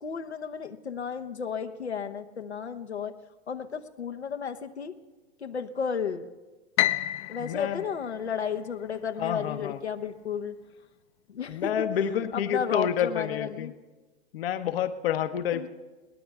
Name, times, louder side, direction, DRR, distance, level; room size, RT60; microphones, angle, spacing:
voice 1, 0.0-3.1 3.5-4.9 5.4-6.3 7.3-10.6 11.3-13.7 15.5-15.7, left 6 dB, 90° left, 5 dB, 1.1 m, -33 dB
Piano, 6.8-9.0, left 14 dB, 35° left, 0.5 m, -30 dB
voice 2, 7.4-7.8 9.2-9.8 11.5-13.7 14.3-15.7, left 9 dB, 60° left, 10 dB, 0.9 m, -29 dB
22.0 x 18.0 x 3.5 m, 1.2 s
hypercardioid pair, 105°, 32 cm